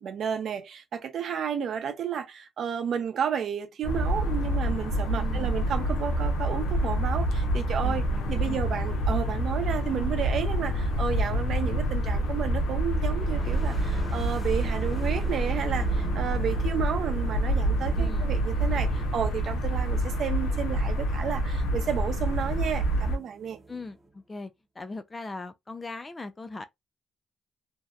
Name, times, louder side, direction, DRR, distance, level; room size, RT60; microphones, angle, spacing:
voice 1, 0.0-23.6, right 8 dB, 60° right, 0.6 m, -32 dB
sound 1, 3.8-23.2, right 1 dB, 90° left, 0.6 m, -27 dB
voice 2, 5.2-5.6 7.8-8.6 17.9-18.3 23.7-24.5 24.8-26.6, left 3 dB, 20° left, 0.3 m, -39 dB
sound 2, 12.8-24.4, right 3 dB, 10° right, 0.8 m, -46 dB
2.7 x 2.1 x 2.3 m
cardioid pair, 125°, 0 cm